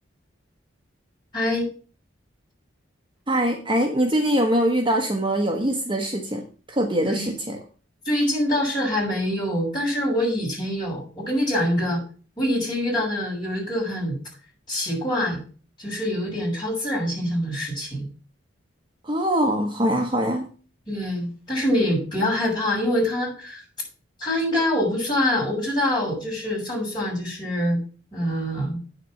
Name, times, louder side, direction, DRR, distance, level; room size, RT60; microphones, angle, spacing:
voice 1, 1.3-1.7 7.0-7.3 8.0-12.0 12.4-14.2 14.7-15.4 15.8-18.0 20.9-23.6 24.2-27.8 28.1-28.8, left 1 dB, 25° left, -5 dB, 6.1 m, -25 dB
voice 2, 3.3-7.6 19.0-20.5, right 1 dB, 25° right, 3 dB, 1.1 m, -23 dB
9.1 x 6.8 x 5.8 m, 0.38 s
head